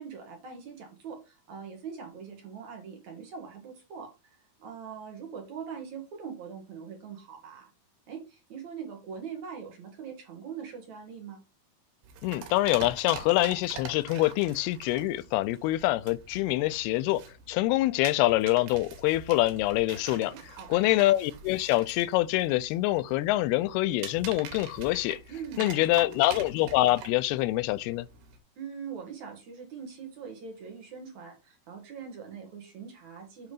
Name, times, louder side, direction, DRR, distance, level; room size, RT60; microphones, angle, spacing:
voice 1, 0.0-7.7 8.1-11.4 20.3-20.8 25.3-26.3 28.6-33.5, right 6 dB, 55° right, 2.5 m, -42 dB
sound 1, 12.0-28.4, right 6 dB, 90° right, 3.3 m, -45 dB
voice 2, 12.2-20.3 20.7-25.2 25.6-28.1, left 17 dB, 85° left, 2.5 m, -25 dB
8.2 x 3.7 x 5.0 m
omnidirectional pair, 4.5 m